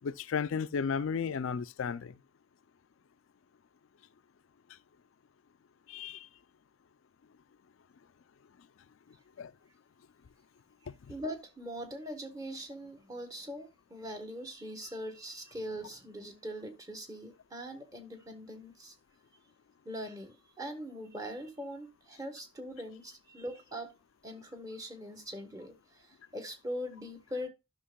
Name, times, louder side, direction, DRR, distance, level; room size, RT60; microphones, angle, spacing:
voice 1, 0.0-2.2 5.9-6.3 9.4-9.5, left 6 dB, 70° left, 0.4 m, -33 dB
voice 2, 11.1-18.9 19.8-23.9 24.2-27.5, equal, 15° right, 1.2 m, -42 dB
12.5 x 5.9 x 2.2 m
head